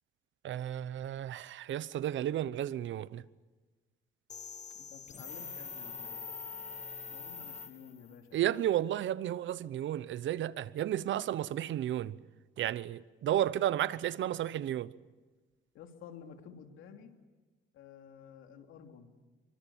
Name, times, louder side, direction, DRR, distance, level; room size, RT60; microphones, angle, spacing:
voice 1, 0.4-3.2 8.3-12.2 12.6-14.9, right 12 dB, 70° right, 1.0 m, -33 dB
sound 1, 4.3-8.2, left 5 dB, 35° left, 1.4 m, -44 dB
voice 2, 4.7-6.3 7.1-8.4 15.7-17.1 17.7-19.1, left 7 dB, 90° left, 3.1 m, -52 dB
26.5 x 24.0 x 7.3 m
cardioid pair, 90°, 20 cm